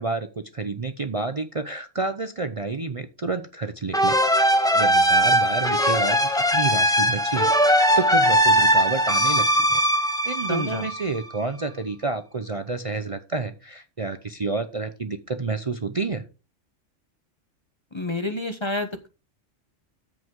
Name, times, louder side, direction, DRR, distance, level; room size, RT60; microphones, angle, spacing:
voice 1, 0.0-4.5 4.7-16.3, right 3 dB, 35° right, 8 dB, 0.7 m, -30 dB
sound 1, 3.9-11.4, equal, 5° left, 1.1 m, -20 dB
voice 2, 10.5-10.9 17.9-19.1, left 2 dB, 25° left, 7 dB, 0.9 m, -29 dB
14.0 x 5.3 x 3.7 m, 0.31 s
omnidirectional pair, 1.2 m